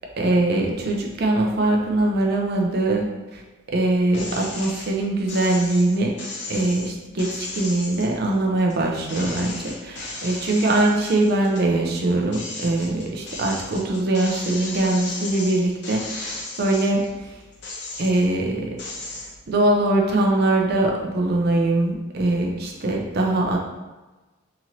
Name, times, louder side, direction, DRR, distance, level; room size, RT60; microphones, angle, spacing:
voice 1, 0.2-3.0 3.3-3.4 3.7-6.1 6.5-17.3 18.0-19.1 19.5-23.6, right 2 dB, 50° right, 0 dB, 0.5 m, -22 dB
sound 1, 4.1-4.9 5.3-8.8 9.1-11.7 12.1-17.1 17.5-18.4 18.8-19.3, left 2 dB, 55° left, 0.6 m, -35 dB
2.9 x 2.5 x 2.8 m, 1.2 s
head